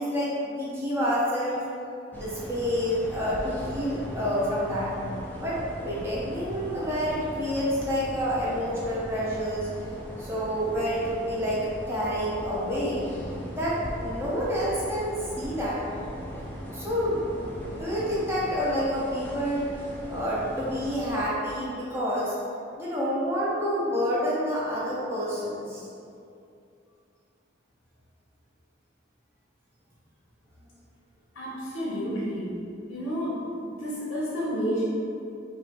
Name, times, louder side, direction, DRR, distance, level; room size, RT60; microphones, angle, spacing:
voice 1, 0.0-1.6 2.1-5.0 5.4-9.7 10.2-13.1 13.5-15.8 16.7-19.7 20.1-22.3 22.8-25.9, equal, 15° right, -8 dB, 0.7 m, -28 dB
sound 1, 2.1-21.3, equal, 10° left, 0.3 m, -39 dB
voice 2, 31.3-32.5 32.9-33.4 33.8-34.8, equal, 80° left, -7 dB, 0.8 m, -30 dB
4.9 x 2.6 x 2.9 m, 2.5 s
head